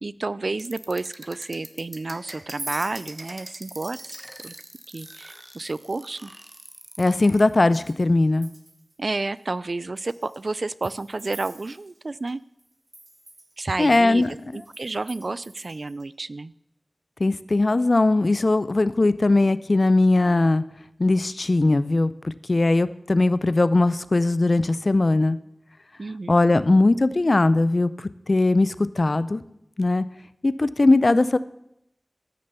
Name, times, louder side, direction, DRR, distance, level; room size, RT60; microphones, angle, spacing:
voice 1, 0.0-4.0 4.4-4.6 4.9-6.3 9.0-12.4 13.6-16.5 26.0-26.6, right 3 dB, 70° right, 18 dB, 0.3 m, -31 dB
sound 1, 0.5-7.4, right 1 dB, 30° right, 1.2 m, -43 dB
Chink clink, 2.4-8.1 8.3-8.9 9.4-9.5 10.0-12.3 12.6-16.1, right 2 dB, 50° right, 1.3 m, -45 dB
voice 2, 7.0-8.5 13.8-14.3 17.2-20.6 21.0-25.4 26.3-29.4 29.8-30.0 30.4-31.4, left 2 dB, 60° left, 15 dB, 0.5 m, -20 dB
13.5 x 6.6 x 6.8 m, 0.80 s
wide cardioid pair, 55°, 0 cm